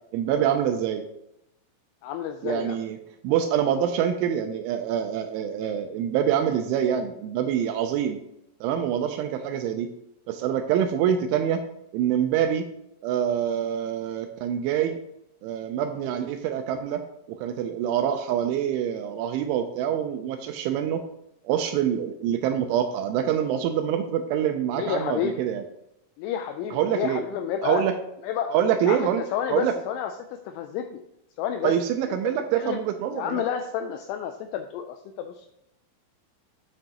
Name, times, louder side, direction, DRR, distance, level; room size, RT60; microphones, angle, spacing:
voice 1, 0.1-1.0 2.4-3.0 3.2-8.2 8.6-9.9 10.3-11.6 11.9-12.7 13.0-15.0 15.4-17.0 17.3-21.0 21.4-25.6 26.7-27.2 27.6-27.9 28.5-29.2 29.5-29.8 31.6-33.4, right 9 dB, 80° right, 7 dB, 2.9 m, -25 dB
voice 2, 2.0-2.8 24.7-25.5 26.2-27.8 28.2-28.5 28.8-30.1 30.5-31.0 31.4-31.7 32.1-32.2 32.6-32.8 33.1-35.5, left 9 dB, 90° left, 6 dB, 2.6 m, -30 dB
9.1 x 7.6 x 2.9 m, 0.83 s
omnidirectional pair, 5.9 m